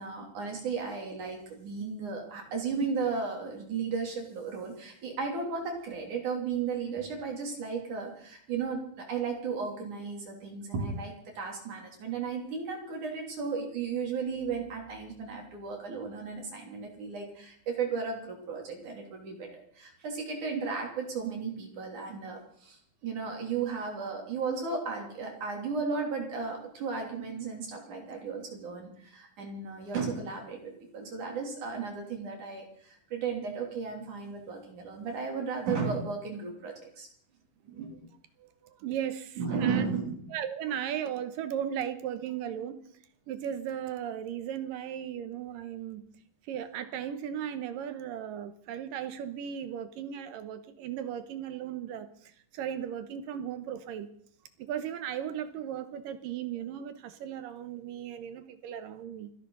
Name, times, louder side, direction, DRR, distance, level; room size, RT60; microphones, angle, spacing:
voice 1, 0.0-37.1 37.6-37.9 39.4-40.2, right 5 dB, 65° right, 1 dB, 4.6 m, -35 dB
voice 2, 38.4-39.9 40.3-42.8 43.3-46.0 46.5-54.1 54.6-59.3, right 9 dB, 85° right, 10 dB, 2.8 m, -36 dB
28.5 x 11.0 x 4.0 m, 0.63 s
omnidirectional pair, 3.9 m